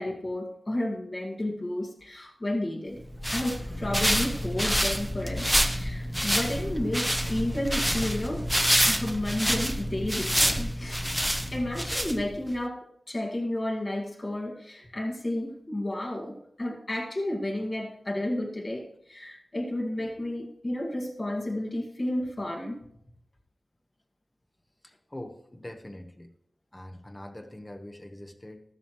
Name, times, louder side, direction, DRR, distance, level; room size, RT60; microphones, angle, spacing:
voice 1, 0.0-3.0 3.3-8.5 8.9-11.0 11.5-22.8, left 1 dB, 35° left, 0 dB, 2.0 m, -32 dB
sound 1, 3.0-12.5, equal, ahead, 0.9 m, -27 dB
voice 2, 24.8-26.3 26.7-28.6, left 1 dB, 20° left, 6 dB, 1.2 m, -43 dB
13.0 x 13.0 x 3.1 m, 0.72 s
wide cardioid pair, 80°, 0 cm